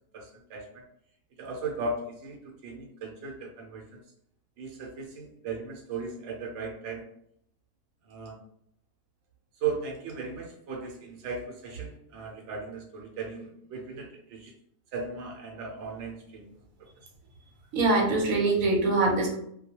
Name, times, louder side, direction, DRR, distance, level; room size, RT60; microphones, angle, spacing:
voice 1, 0.1-0.8 1.4-4.0 4.6-7.0 8.0-8.3 9.6-14.5 14.9-16.5, right 4 dB, 65° right, 1 dB, 0.9 m, -37 dB
voice 2, 17.7-19.4, right 2 dB, 80° right, -1 dB, 1.1 m, -23 dB
2.2 x 2.2 x 2.9 m, 0.70 s
omnidirectional pair, 1.5 m